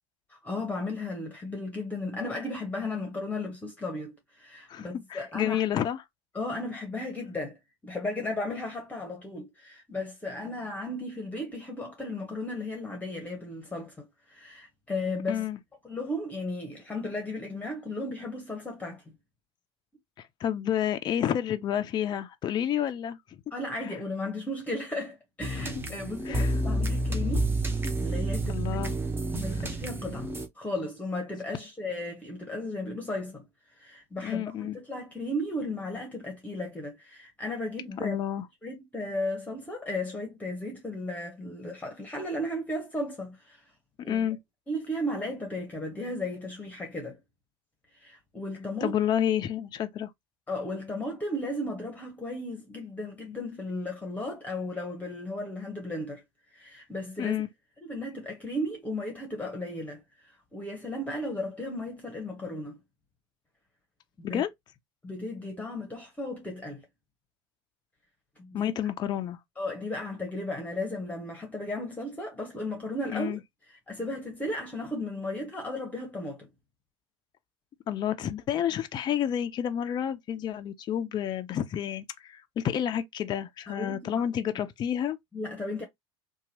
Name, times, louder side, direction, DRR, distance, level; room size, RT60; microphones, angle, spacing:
voice 1, 0.3-5.6 6.3-7.6 7.8-15.4 15.8-19.1 23.5-27.5 28.0-28.6 29.3-33.4 33.8-38.2 38.6-43.6 44.0-44.3 44.7-47.2 47.9-49.0 50.5-56.2 56.5-57.4 57.8-62.8 64.2-64.4 65.0-66.8 68.4-68.7 69.6-73.4 73.7-76.5 83.7-84.3 85.3-85.8, left 1 dB, 10° left, 0.9 m, -35 dB
voice 2, 4.7-6.0 15.3-15.6 20.2-23.4 23.8-23.9 25.5-25.8 26.3-26.5 28.5-29.0 34.2-34.8 38.0-38.5 44.1-44.4 48.8-50.1 57.2-57.5 64.2-64.5 68.5-69.4 73.1-73.4 77.9-85.2, left 10 dB, 30° left, 0.4 m, -30 dB
sound 1, 25.4-30.5, right 1 dB, 15° right, 0.6 m, -29 dB
2.8 x 2.3 x 2.7 m
hypercardioid pair, 75°, 14 cm